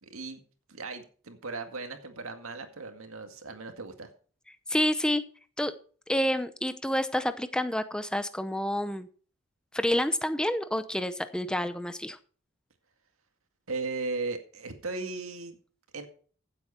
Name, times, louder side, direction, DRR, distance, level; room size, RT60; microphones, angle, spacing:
voice 1, 0.0-0.4 0.7-4.1 13.7-15.6 15.9-16.1, right 3 dB, 80° right, 6 dB, 2.0 m, -37 dB
voice 2, 4.7-5.2 5.6-5.7 6.1-9.1 9.7-12.2, left 1 dB, 5° left, 11 dB, 0.7 m, -28 dB
15.5 x 8.1 x 4.4 m, 0.43 s
head